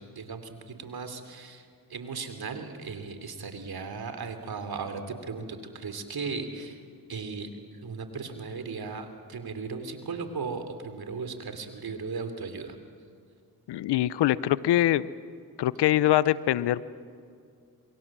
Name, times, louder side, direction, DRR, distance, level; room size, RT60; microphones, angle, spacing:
voice 1, 0.0-6.8 7.1-7.5 7.8-12.8, right 4 dB, 65° right, 8 dB, 3.2 m, -37 dB
voice 2, 13.7-15.1 15.6-16.8, left 13 dB, 90° left, 18 dB, 0.6 m, -23 dB
27.0 x 23.5 x 7.4 m, 2.3 s
supercardioid pair, 45°, 39 cm